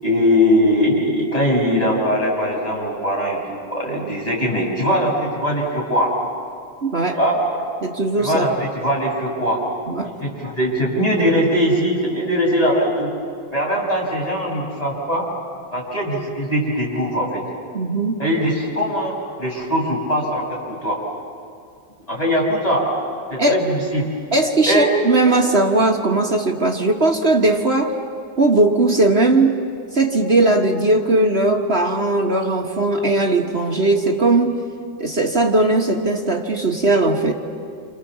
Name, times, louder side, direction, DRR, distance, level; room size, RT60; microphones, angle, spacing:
voice 1, 0.0-6.2 7.1-7.7 8.2-9.6 10.0-13.1 13.5-15.3 15.7-17.4 18.2-21.0 22.1-22.9 23.3-24.1 24.7-24.9, equal, 15° left, -3 dB, 6.0 m, -21 dB
voice 2, 6.8-7.2 7.8-8.4 9.9-10.1 17.7-18.2 23.4-23.6 24.3-27.9 28.4-29.6 29.9-34.6 35.0-37.3, right 2 dB, 35° right, 2 dB, 1.4 m, -18 dB
28.5 x 27.0 x 7.4 m, 2.3 s
omnidirectional pair, 2.2 m